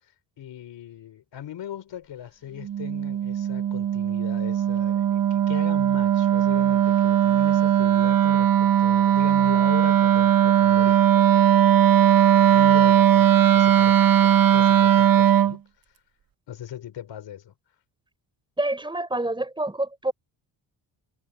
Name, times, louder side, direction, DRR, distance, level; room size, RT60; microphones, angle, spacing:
voice 1, 0.4-15.6 16.5-17.5, left 10 dB, 65° left, 3.8 m, -39 dB
Wind instrument woodwind instrument, 2.6-15.6, right 10 dB, 45° right, 1.0 m, -19 dB
voice 2, 18.6-20.1, right 2 dB, 10° right, 5.6 m, -27 dB
cardioid pair, 155°, 46 cm